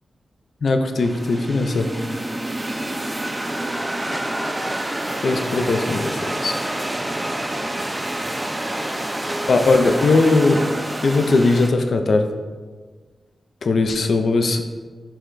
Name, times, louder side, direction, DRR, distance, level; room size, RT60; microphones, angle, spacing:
voice 1, 0.6-1.9 5.2-6.6 9.5-10.6 11.0-12.3 13.6-14.6, left 3 dB, 65° left, 6 dB, 0.4 m, -19 dB
sound 1, 1.0-11.7, right 1 dB, 20° right, 0.4 m, -27 dB
5.7 x 2.2 x 3.8 m, 1.4 s
cardioid pair, 50°, 0 cm